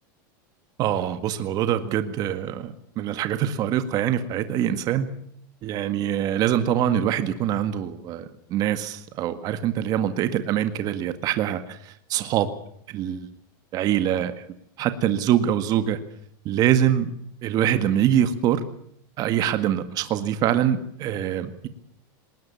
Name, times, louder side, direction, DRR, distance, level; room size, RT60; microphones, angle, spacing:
voice 1, 0.8-5.1 5.6-12.5 12.9-13.3 13.7-14.3 14.8-16.0 16.5-17.1 17.4-18.6 19.2-21.7, right 10 dB, 35° right, 10 dB, 1.8 m, -24 dB
20.0 x 20.0 x 7.1 m, 0.69 s
supercardioid pair, 155°, 11 cm